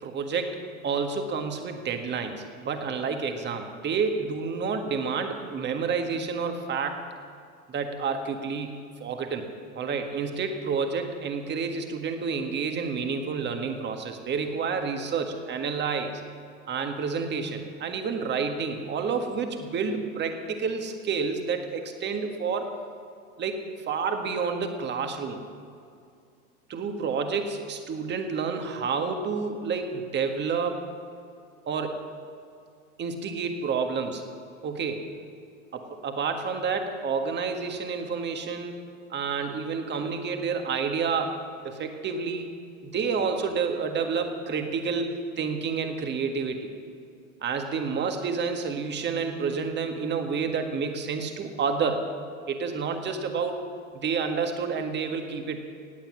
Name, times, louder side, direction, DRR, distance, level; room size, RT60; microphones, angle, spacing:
voice 1, 0.0-7.0 7.7-9.5 9.7-16.1 16.7-22.7 23.4-25.4 26.7-30.8 31.7-32.0 33.0-34.2 34.6-35.1 35.7-38.8 39.1-41.4 41.6-42.5 42.8-46.7 47.4-52.0 52.5-53.6 53.9-55.6, right 5 dB, 25° right, 5 dB, 1.7 m, -29 dB
17.5 x 9.0 x 7.4 m, 2.4 s
hypercardioid pair, 110°, 43 cm